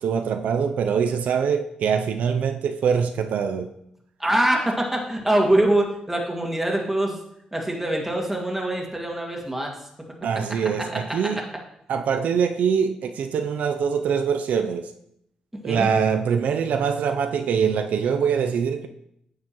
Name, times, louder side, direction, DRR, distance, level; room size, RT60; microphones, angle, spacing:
voice 1, 0.0-3.7 10.2-11.5 11.9-14.9 15.6-18.9, right 6 dB, 80° right, 6 dB, 0.5 m, -23 dB
voice 2, 4.2-7.2 7.5-9.7 15.6-15.9, right 1 dB, 10° right, 0 dB, 2.0 m, -23 dB
9.4 x 6.7 x 3.0 m, 0.75 s
cardioid pair, 70°, 3 cm